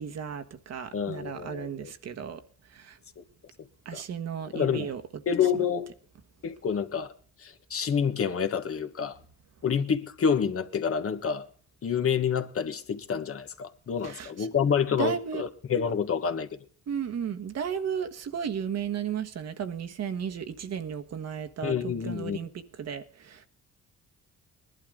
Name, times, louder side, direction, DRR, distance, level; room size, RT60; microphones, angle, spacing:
voice 1, 0.0-2.4 2.7-3.0 3.8-5.0 14.0-14.5 15.0-15.4 16.9-23.5, right 7 dB, 55° right, 1.4 m, -34 dB
voice 2, 0.9-1.9 3.2-3.3 3.9-4.0 4.5-4.9 5.3-5.9 6.4-7.1 7.4-9.2 9.6-11.5 11.8-16.5 21.6-22.4, left 7 dB, 50° left, 1.4 m, -28 dB
19.5 x 11.5 x 3.7 m
cardioid pair, 90°, 30 cm